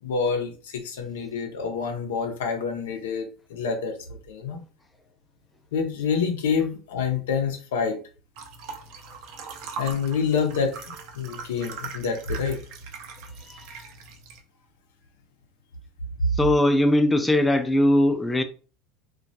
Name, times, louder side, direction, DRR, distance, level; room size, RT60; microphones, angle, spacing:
voice 1, 0.0-4.6 5.7-8.0 9.8-12.6, left 6 dB, 85° left, 0.5 m, -27 dB
sound 1, 8.4-14.4, right 5 dB, 65° right, 0.5 m, -40 dB
voice 2, 13.5-13.8 16.4-18.4, left 1 dB, 10° left, 0.3 m, -20 dB
2.2 x 2.1 x 2.6 m
supercardioid pair, 100°, 0 cm